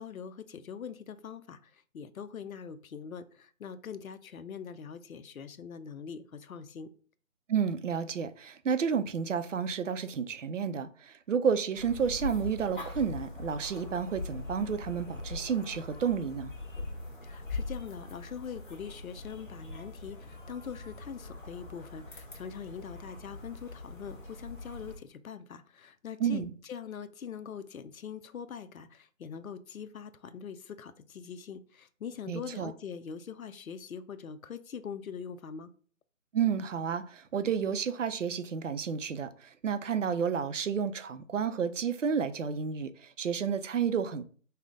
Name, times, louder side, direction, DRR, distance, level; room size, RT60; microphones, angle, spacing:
voice 1, 0.0-6.9 17.2-35.7, left 7 dB, 85° left, 0.6 m, -43 dB
voice 2, 7.5-16.5 26.2-26.5 32.3-32.7 36.3-44.2, right 7 dB, 65° right, 0.6 m, -31 dB
sound 1, 11.7-25.0, left 2 dB, 35° left, 1.2 m, -42 dB
5.4 x 2.2 x 3.7 m
figure-of-eight pair, 170°, 40 cm